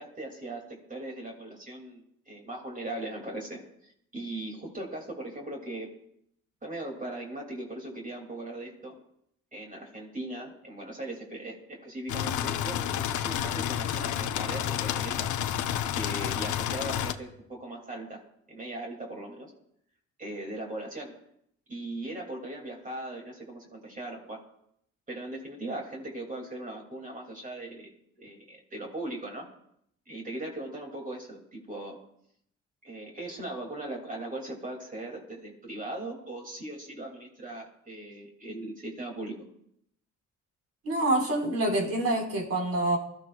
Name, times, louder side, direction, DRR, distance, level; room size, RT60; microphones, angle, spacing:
voice 1, 0.0-5.9 6.6-8.9 9.5-15.3 15.9-18.2 18.5-19.5 20.2-21.2 21.7-24.4 25.1-27.9 28.2-29.5 30.1-32.0 32.8-39.4, right 1 dB, 25° right, 0 dB, 2.9 m, -39 dB
sound 1, 12.1-17.1, left 10 dB, 80° left, 0.8 m, -30 dB
voice 2, 40.8-43.0, right 1 dB, 55° right, 0 dB, 5.1 m, -26 dB
21.5 x 13.5 x 2.5 m, 0.71 s
cardioid pair, 90°, 30 cm